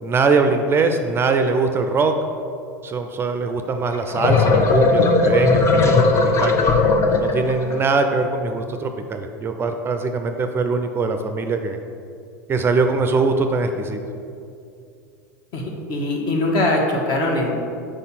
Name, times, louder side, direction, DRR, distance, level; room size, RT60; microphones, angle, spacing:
voice 1, 0.0-2.1 2.8-5.9 6.4-6.6 7.2-11.8 12.5-14.0, right 4 dB, 25° right, 6 dB, 0.4 m, -22 dB
sound 1, 3.9-7.8, left 3 dB, 30° left, 0.6 m, -17 dB
voice 2, 15.9-17.5, left 2 dB, 50° left, 0 dB, 1.3 m, -21 dB
4.9 x 4.1 x 5.7 m, 2.5 s
hypercardioid pair, 85°, 10 cm